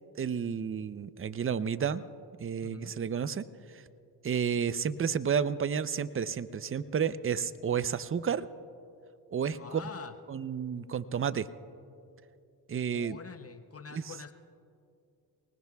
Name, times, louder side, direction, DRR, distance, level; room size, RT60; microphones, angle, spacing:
voice 1, 0.2-2.0 2.4-3.4 3.7-3.8 4.2-8.5 9.3-9.8 10.3-11.5 12.7-13.2 13.9-14.0, right 7 dB, 30° right, 14 dB, 0.6 m, -31 dB
voice 2, 2.6-3.0 9.6-10.2 12.9-14.3, left 6 dB, 35° left, 9 dB, 0.8 m, -45 dB
29.5 x 19.5 x 2.3 m, 2.6 s
supercardioid pair, 65°, 42 cm